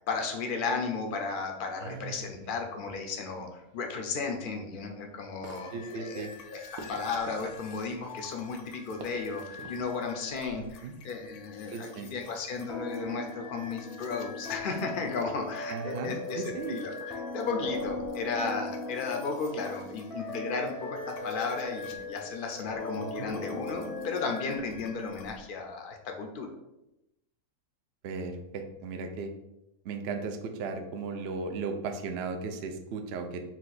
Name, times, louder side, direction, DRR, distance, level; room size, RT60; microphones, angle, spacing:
voice 1, 0.0-16.4 16.7-26.5, left 4 dB, 55° left, 3 dB, 0.6 m, -34 dB
sound 1, 1.7-11.8, right 2 dB, 85° right, 1.1 m, -51 dB
voice 2, 1.8-2.5 5.7-6.3 10.6-10.9 11.7-12.1 15.7-16.8 23.0-23.3 28.0-29.3 29.8-33.4, right 4 dB, 65° right, 5 dB, 0.6 m, -36 dB
sound 2, 5.4-25.4, left 6 dB, 85° left, 1.1 m, -49 dB
sound 3, 12.7-25.1, left 2 dB, ahead, 0.5 m, -39 dB
4.3 x 2.5 x 4.0 m, 0.89 s
omnidirectional pair, 1.5 m